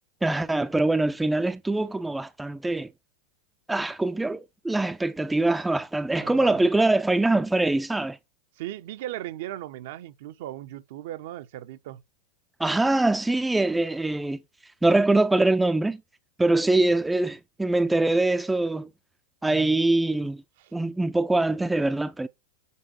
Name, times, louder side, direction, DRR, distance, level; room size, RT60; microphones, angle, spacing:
voice 1, 0.2-2.9 3.7-8.2 12.6-14.4 14.8-16.0 16.4-18.9 19.4-20.4 20.7-22.3, right 2 dB, 5° right, 0.6 m, -23 dB
voice 2, 6.2-6.6 8.6-12.0 19.4-19.8 20.6-20.7, right 14 dB, 65° right, 0.9 m, -37 dB
8.4 x 4.5 x 4.3 m
hypercardioid pair, 105°, 0 cm